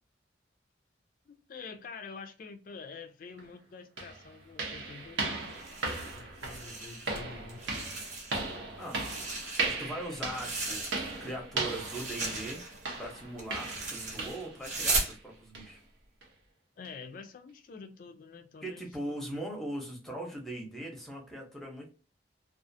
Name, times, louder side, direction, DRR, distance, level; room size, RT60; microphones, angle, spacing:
voice 1, 1.3-5.4 6.2-8.0 16.8-19.2, left 4 dB, 50° left, 0.3 m, -47 dB
sound 1, 3.4-3.5 4.0-14.6 14.9-15.2 15.5-15.7 16.2-16.3 16.8-16.9, right 3 dB, 90° right, 0.8 m, -37 dB
sound 2, 5.5-7.2 7.5-8.5 8.8-11.3 11.6-15.1, right 3 dB, 40° right, 0.8 m, -37 dB
voice 2, 8.8-9.1 9.6-12.7 13.0-15.8 18.6-21.9, right 1 dB, ahead, 0.7 m, -40 dB
2.4 x 2.4 x 2.6 m
head